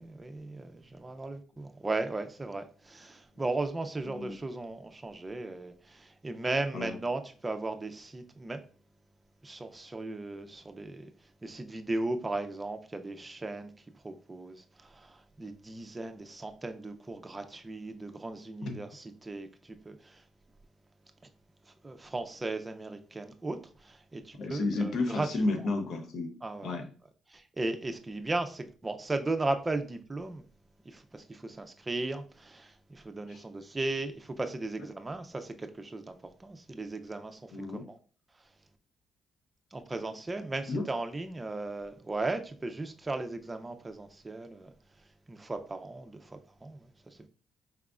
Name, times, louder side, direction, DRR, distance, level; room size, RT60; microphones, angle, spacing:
voice 1, 0.0-8.6 9.4-20.2 21.7-25.3 26.4-26.7 27.3-30.4 30.8-38.0 39.7-44.7 45.3-47.3, right 2 dB, 20° right, 0.5 m, -36 dB
voice 2, 24.4-26.3 26.6-26.9 33.3-33.4 37.5-37.9 40.7-40.9, left 2 dB, 65° left, 0.8 m, -32 dB
4.8 x 3.5 x 2.4 m
cardioid pair, 90°, 0 cm